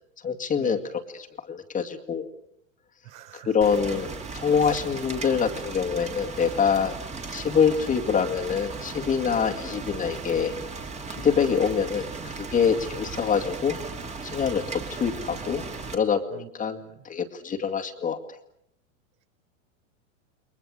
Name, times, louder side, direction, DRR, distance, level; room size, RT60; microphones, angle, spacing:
voice 1, 0.2-0.8 1.1-2.3 3.3-7.0 7.3-10.5 11.1-13.8 14.2-15.6 15.9-16.8 17.0-18.2, left 6 dB, 20° left, 4 dB, 2.1 m, -25 dB
voice 2, 3.0-3.5 4.6-4.8 9.3-9.5 16.3-17.0, right 13 dB, 65° right, 5 dB, 6.0 m, -43 dB
Rain, 3.6-15.9, right 4 dB, 15° right, 2.7 m, -37 dB
29.5 x 23.0 x 6.6 m, 0.75 s
supercardioid pair, 140°, 42 cm